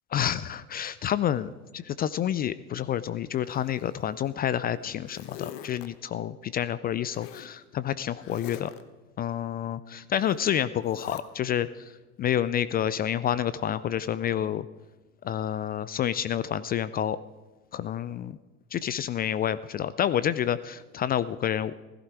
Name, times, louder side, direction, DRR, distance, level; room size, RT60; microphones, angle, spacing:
voice 1, 0.1-8.7 9.2-11.9 12.2-14.7 15.2-17.2 17.7-18.4 18.7-21.7, left 10 dB, 25° left, 16 dB, 0.4 m, -29 dB
Zipper (clothing), 3.3-4.3 4.7-5.9 7.1-7.5 8.2-8.8 10.1-10.4 10.8-11.2, left 11 dB, 70° left, 1.2 m, -44 dB
16.5 x 14.5 x 4.7 m, 1.2 s
hypercardioid pair, 80°, 39 cm